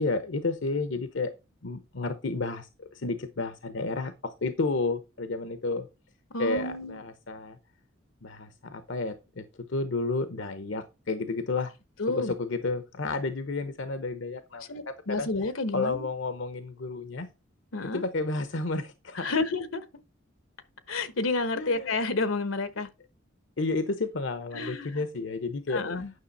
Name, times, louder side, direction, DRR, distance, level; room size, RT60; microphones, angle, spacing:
voice 1, 0.0-1.3 1.6-5.9 6.4-7.6 8.2-9.4 9.7-11.7 12.1-15.3 15.7-17.3 17.9-19.3 21.5-21.9 23.6-25.8, left 3 dB, 65° left, 0.8 m, -31 dB
voice 2, 6.3-7.0 12.0-12.3 14.7-16.1 17.7-18.0 19.1-19.8 20.9-22.9 24.5-25.0 25.7-26.1, left 3 dB, 80° left, 1.1 m, -30 dB
9.7 x 6.1 x 4.2 m
head